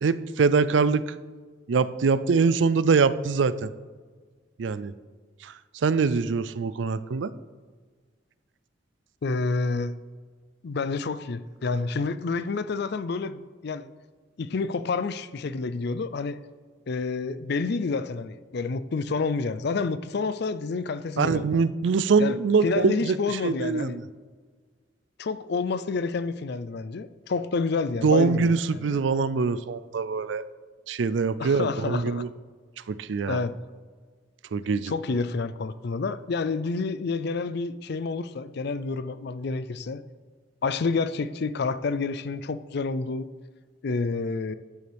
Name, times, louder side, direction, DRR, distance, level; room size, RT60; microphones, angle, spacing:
voice 1, 0.0-1.0 1.7-3.7 4.6-4.9 5.4-5.5 5.8-7.3 21.2-24.0 28.0-30.4 30.9-32.3 32.9-33.4 34.5-34.9, right 4 dB, 80° right, 0.4 m, -23 dB
voice 2, 9.2-9.9 10.6-13.9 14.4-16.4 16.9-21.6 22.2-22.4 22.6-24.0 25.2-29.0 31.4-32.2 33.3-33.5 34.9-40.0 40.6-43.3 43.8-44.5, left 4 dB, 60° left, 0.5 m, -29 dB
12.5 x 9.2 x 3.5 m
head